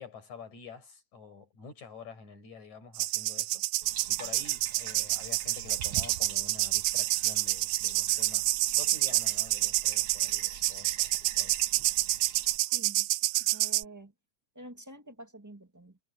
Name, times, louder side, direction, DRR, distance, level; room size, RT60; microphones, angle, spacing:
voice 1, 0.0-3.6 4.1-11.6, left 5 dB, 70° left, 6.9 m, -48 dB
sound 1, 3.0-13.8, right 18 dB, 85° right, 2.1 m, -28 dB
Bathtub (filling or washing), 3.8-12.6, right 5 dB, 45° right, 2.9 m, -48 dB
voice 2, 12.7-13.1 13.4-14.1 14.5-16.0, right 1 dB, 10° right, 0.7 m, -48 dB
omnidirectional pair, 3.4 m